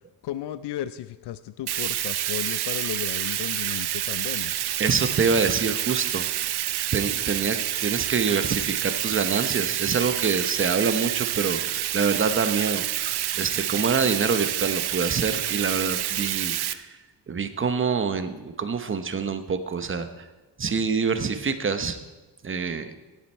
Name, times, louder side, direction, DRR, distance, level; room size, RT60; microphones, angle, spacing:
voice 1, 0.2-4.5, left 12 dB, 75° left, 13 dB, 0.5 m, -34 dB
Bathtub (filling or washing), 1.7-16.7, right 12 dB, 65° right, 0.6 m, -28 dB
voice 2, 4.8-6.3 6.9-13.1 13.4-16.9 17.3-20.1 20.6-22.0 22.4-22.9, right 5 dB, 30° right, 9 dB, 0.8 m, -26 dB
16.5 x 7.3 x 4.5 m, 1.2 s
wide cardioid pair, 130°, 41 cm